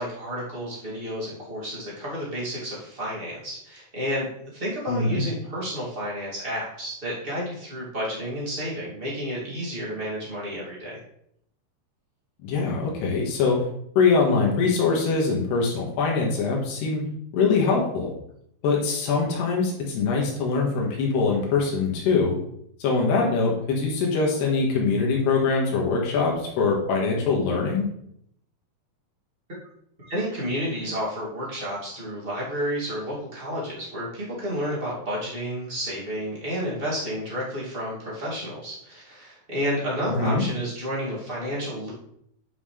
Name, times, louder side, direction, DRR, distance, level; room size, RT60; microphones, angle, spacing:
voice 1, 0.0-11.0 30.1-41.9, equal, 15° right, -6 dB, 2.0 m, -31 dB
voice 2, 4.9-5.2 12.4-13.6 14.0-17.0 17.3-18.1 18.6-22.4 22.8-27.9 40.2-40.4, left 4 dB, 80° left, -2 dB, 3.8 m, -23 dB
9.2 x 5.7 x 3.4 m, 0.72 s
omnidirectional pair, 4.7 m